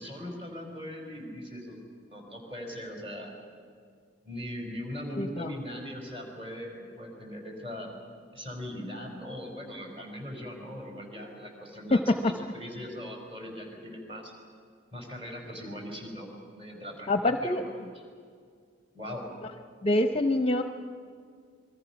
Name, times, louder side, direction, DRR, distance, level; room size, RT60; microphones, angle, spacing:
voice 1, 0.0-1.8 2.1-3.3 4.2-8.0 8.3-14.3 14.9-17.6 18.9-19.2, equal, 30° right, 2 dB, 4.8 m, -40 dB
voice 2, 5.2-5.5 11.9-12.0 17.1-17.6 19.8-20.6, left 2 dB, 30° left, 6 dB, 0.7 m, -25 dB
28.0 x 22.0 x 5.9 m, 2.1 s
head